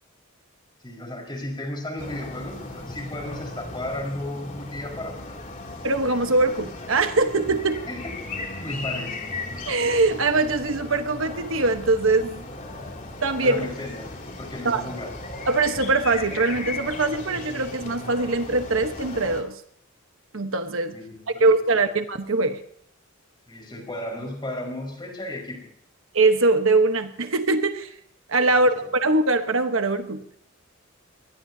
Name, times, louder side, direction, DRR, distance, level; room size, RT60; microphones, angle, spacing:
voice 1, 0.8-5.4 7.9-8.3 8.6-9.3 13.4-14.1 14.4-15.1 20.9-21.5 23.5-25.7 28.5-28.9, left 1 dB, 20° left, 2 dB, 5.0 m, -34 dB
sound 1, 2.0-19.4, left 2 dB, 40° left, 2.9 m, -37 dB
voice 2, 5.8-7.8 9.7-12.5 13.2-13.7 14.6-14.8 15.5-19.6 20.3-21.0 21.4-22.6 26.1-27.9 28.3-30.2, right 3 dB, 65° right, 7 dB, 1.2 m, -22 dB
23.5 x 19.0 x 2.8 m, 0.67 s
head